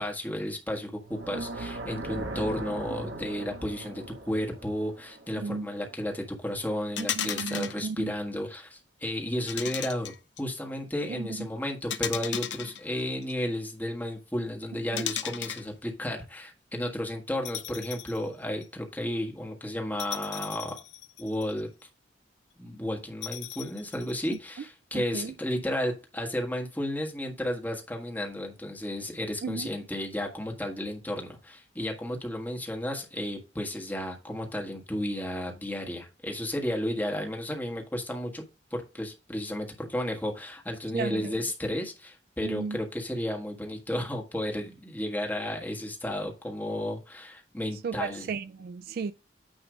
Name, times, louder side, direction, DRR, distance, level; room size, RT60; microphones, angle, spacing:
voice 1, 0.0-10.1 10.4-20.8 21.2-21.7 22.6-38.4 38.7-48.3, left 1 dB, 10° left, 1.5 m, -33 dB
sound 1, 1.0-6.1, right 2 dB, 70° right, 1.3 m, -39 dB
voice 2, 5.4-5.7 7.0-8.1 11.1-11.5 14.9-15.0 24.3-24.4 24.9-25.3 29.4-29.7 40.9-41.3 42.4-42.8 47.8-49.1, right 5 dB, 55° right, 0.3 m, -34 dB
sound 2, 7.0-7.8 9.5-10.4 11.9-13.3 15.0-15.7 17.4-18.2 18.6-18.7 20.0-21.6 23.2-24.4, left 10 dB, 70° left, 0.7 m, -35 dB
9.3 x 3.1 x 4.9 m
head